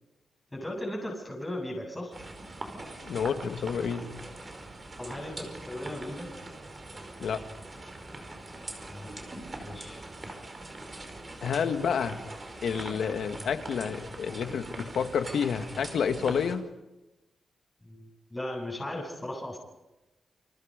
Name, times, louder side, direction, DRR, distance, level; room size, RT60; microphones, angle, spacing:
voice 1, 0.5-2.1 5.0-6.3 8.8-9.1 9.5-10.0 17.8-19.6, left 1 dB, 10° left, -1 dB, 7.7 m, -37 dB
sound 1, 2.1-16.5, right 2 dB, 25° right, 5.1 m, -42 dB
voice 2, 3.0-4.1 7.2-7.4 11.4-12.2 12.6-16.6, left 7 dB, 75° left, 7 dB, 2.2 m, -29 dB
29.0 x 28.5 x 5.4 m, 0.99 s
wide cardioid pair, 145°, 0 cm